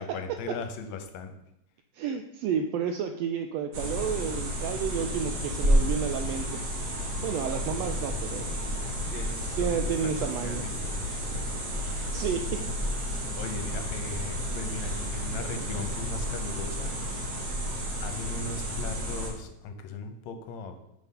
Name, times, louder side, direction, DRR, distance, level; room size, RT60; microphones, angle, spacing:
voice 1, 0.0-1.3 6.2-6.6 9.1-10.6 10.8-11.0 11.8-12.1 13.3-17.0 18.0-20.7, left 3 dB, 75° left, 7 dB, 2.0 m, -39 dB
voice 2, 1.9-6.5 7.2-8.4 9.6-10.6 12.1-12.6, right 7 dB, 85° right, 6 dB, 1.4 m, -31 dB
sound 1, 3.7-19.3, equal, 45° right, 1.5 m, -31 dB
6.3 x 5.5 x 5.5 m, 0.82 s
omnidirectional pair, 3.4 m